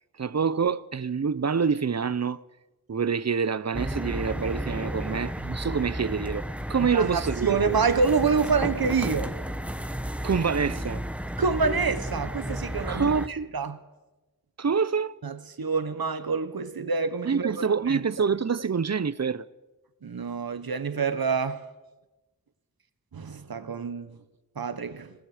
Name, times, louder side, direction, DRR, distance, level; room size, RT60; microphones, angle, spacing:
voice 1, 0.2-2.4 2.9-7.7 10.2-11.0 12.9-13.5 14.6-15.1 17.2-19.5, right 6 dB, 50° right, 0.7 m, -26 dB
sound 1, 3.7-13.3, equal, 5° right, 1.2 m, -33 dB
voice 2, 6.9-9.3 11.4-13.8 15.2-18.0 20.0-21.6 23.1-24.2 24.6-25.1, right 5 dB, 90° right, 1.2 m, -27 dB
27.0 x 19.0 x 5.0 m
wide cardioid pair, 75°, 35 cm